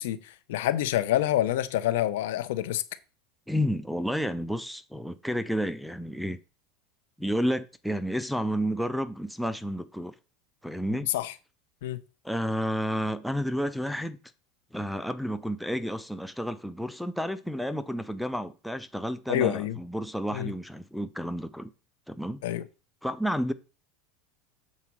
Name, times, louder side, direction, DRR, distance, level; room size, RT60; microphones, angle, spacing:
voice 1, 0.0-2.8 11.1-11.3 11.8-12.0 19.3-19.8 20.3-20.5 22.4-22.6, left 13 dB, 80° left, 0.8 m, -27 dB
voice 2, 3.5-6.4 7.2-10.1 10.6-11.1 12.2-14.2 14.7-21.7 22.1-22.4 23.0-23.5, equal, ahead, 0.4 m, -31 dB
7.2 x 4.2 x 6.2 m
supercardioid pair, 160°, 0 cm